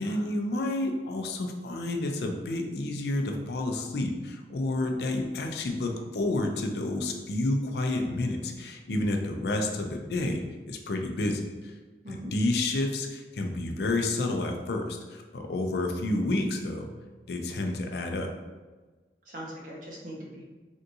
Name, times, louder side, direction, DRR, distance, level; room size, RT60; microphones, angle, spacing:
voice 1, 0.0-11.7 12.3-16.9 17.3-18.3, left 2 dB, 65° left, 4 dB, 0.4 m, -30 dB
voice 2, 19.2-20.5, equal, 45° right, -3 dB, 0.7 m, -41 dB
3.4 x 2.6 x 2.6 m, 1.3 s
head